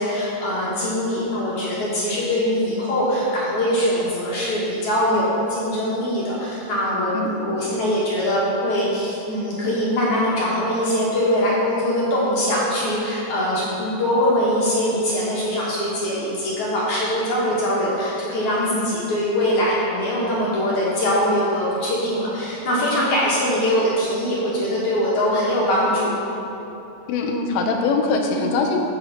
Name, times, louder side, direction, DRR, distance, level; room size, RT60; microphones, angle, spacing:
voice 1, 0.0-26.2 28.3-28.5, equal, 50° left, -7 dB, 2.5 m, -22 dB
voice 2, 27.1-28.8, left 4 dB, 90° left, 2 dB, 3.4 m, -22 dB
15.0 x 6.7 x 4.3 m, 3.0 s
omnidirectional pair, 5.4 m